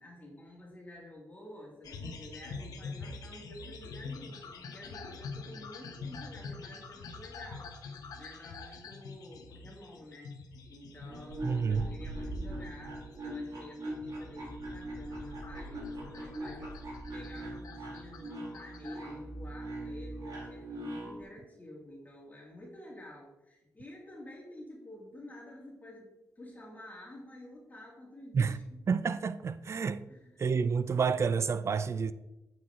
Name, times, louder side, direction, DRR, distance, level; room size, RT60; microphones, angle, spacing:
voice 1, 0.0-7.7 8.2-10.3 10.7-16.7 17.1-28.8 30.1-30.5, left 1 dB, 25° left, 2.5 m, -50 dB
sound 1, 1.8-19.1, left 4 dB, 90° left, 1.0 m, -46 dB
sound 2, 11.0-21.2, right 1 dB, 75° right, 2.9 m, -41 dB
voice 2, 11.4-11.9 28.3-28.5 28.9-30.0 30.4-32.1, right 5 dB, 50° right, 0.5 m, -29 dB
8.9 x 6.1 x 3.7 m
cardioid pair, 95°, 6 cm